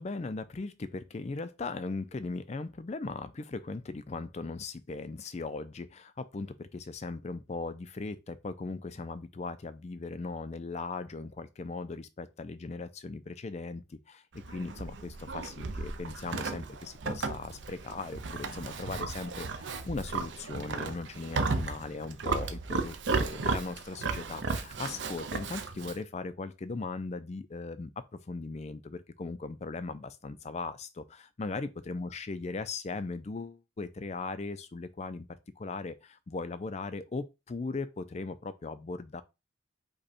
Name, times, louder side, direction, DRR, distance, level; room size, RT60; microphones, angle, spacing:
voice 1, 0.0-27.9 28.3-35.3 35.6-39.2, left 3 dB, 35° left, 0.4 m, -38 dB
Livestock farm animals working animals, 14.3-26.0, right 4 dB, 60° right, 0.5 m, -35 dB
5.3 x 2.3 x 4.2 m
head